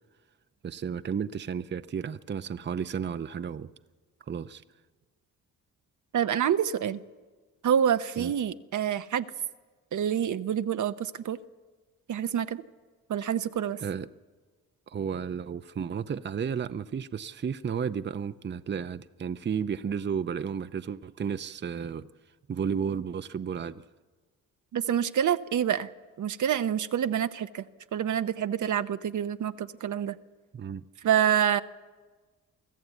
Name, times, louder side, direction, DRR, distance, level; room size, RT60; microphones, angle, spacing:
voice 1, 0.6-3.7 4.3-4.6 8.2-8.3 13.2-13.3 13.8-14.1 14.9-22.1 22.5-23.8 30.5-30.8, right 7 dB, 35° right, 0.6 m, -33 dB
voice 2, 6.1-7.0 7.6-9.2 9.9-11.4 12.1-12.6 13.1-13.8 24.7-25.9 26.2-27.6 27.9-30.2 31.0-31.6, right 9 dB, 65° right, 0.8 m, -27 dB
24.0 x 14.5 x 8.2 m
cardioid pair, 65°, 33 cm